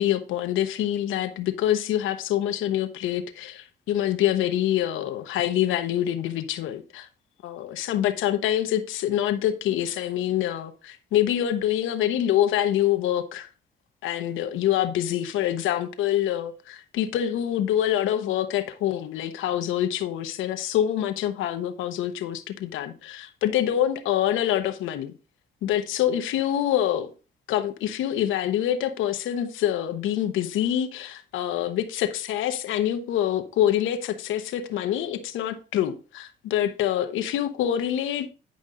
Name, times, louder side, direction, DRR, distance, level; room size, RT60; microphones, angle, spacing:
voice 1, 0.0-7.1 7.4-13.5 14.0-25.1 25.6-27.1 27.5-38.3, left 11 dB, 90° left, 1.1 m, -26 dB
10.0 x 5.3 x 3.9 m
cardioid pair, 90°, 20 cm